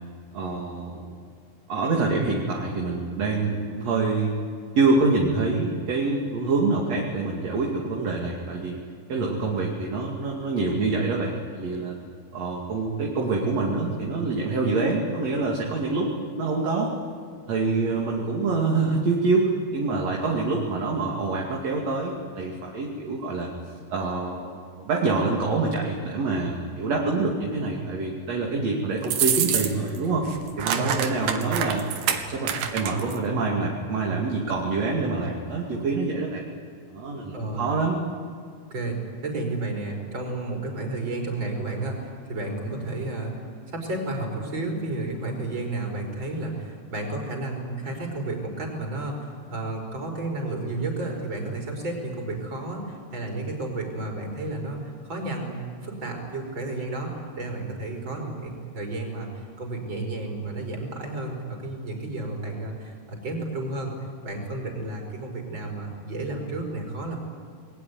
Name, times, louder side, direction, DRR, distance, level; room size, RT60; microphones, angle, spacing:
voice 1, 0.3-1.0 1.7-4.3 4.8-8.8 9.1-12.0 12.3-16.1 16.4-16.9 17.5-23.5 23.9-30.3 30.6-31.8 32.1-36.4 36.9-38.0, right 3 dB, 45° right, -2 dB, 3.4 m, -26 dB
voice 2, 17.6-18.0 30.7-31.1 37.3-37.7 38.7-63.9 64.2-67.2, right 2 dB, 30° right, 2 dB, 5.7 m, -32 dB
sound 1, 29.0-30.0 30.2-33.2, right 8 dB, 70° right, 3.1 m, -26 dB
28.5 x 21.5 x 9.6 m, 2.2 s
omnidirectional pair, 4.4 m